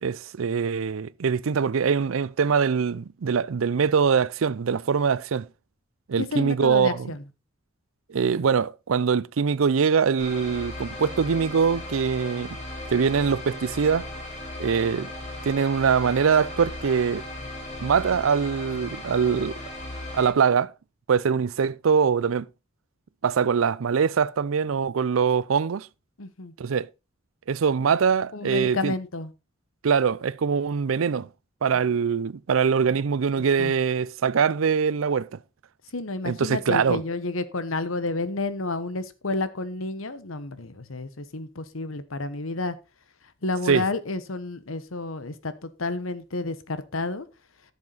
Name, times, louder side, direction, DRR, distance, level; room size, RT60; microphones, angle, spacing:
voice 1, 0.0-5.5 6.1-7.1 8.1-12.6 12.9-14.1 14.6-15.1 15.5-17.2 17.8-19.6 20.1-20.7 21.1-22.5 23.2-25.9 26.6-26.9 27.5-28.9 29.8-31.3 31.6-35.3 36.3-37.0 43.7-43.9, right 6 dB, 85° right, 0.5 m, -23 dB
voice 2, 6.2-7.2 26.2-26.5 28.3-29.3 33.6-33.7 35.9-42.8 43.4-47.3, left 3 dB, 85° left, 1.2 m, -30 dB
sound 1, 10.2-20.3, left 1 dB, 35° left, 5.1 m, -37 dB
13.5 x 7.3 x 4.0 m
head